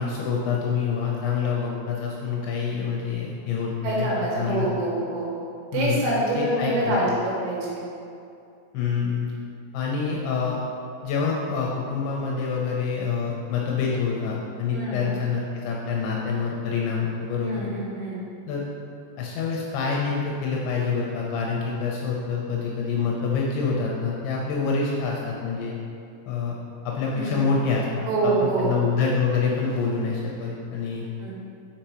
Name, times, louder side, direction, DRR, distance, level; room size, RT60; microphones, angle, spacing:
voice 1, 0.0-4.1 4.3-4.7 5.7-6.0 6.4-7.0 8.7-9.3 9.7-10.6 11.0-17.6 18.5-18.6 19.2-25.8 26.3-26.6 26.9-31.1, left 5 dB, 80° left, -2 dB, 2.7 m, -26 dB
voice 2, 3.8-5.3 5.7-7.8 14.7-15.1 17.4-18.2 27.1-27.4 28.1-28.8 31.2-31.3, right 2 dB, 80° right, -5 dB, 4.0 m, -25 dB
6.9 x 5.2 x 4.4 m, 2.5 s
omnidirectional pair, 5.8 m